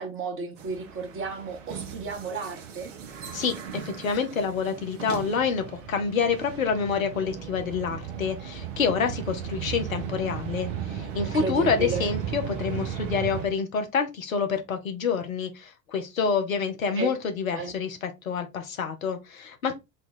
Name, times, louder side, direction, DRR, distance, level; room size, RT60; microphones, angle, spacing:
voice 1, 0.0-2.9 11.1-12.1 16.9-17.1 17.5-17.7, right 4 dB, 30° right, 1.1 m, -33 dB
sound 1, 0.6-13.5, right 8 dB, 65° right, 0.8 m, -36 dB
voice 2, 3.3-19.8, left 6 dB, 80° left, 0.8 m, -27 dB
3.7 x 2.3 x 4.0 m
figure-of-eight pair, 70°, 41 cm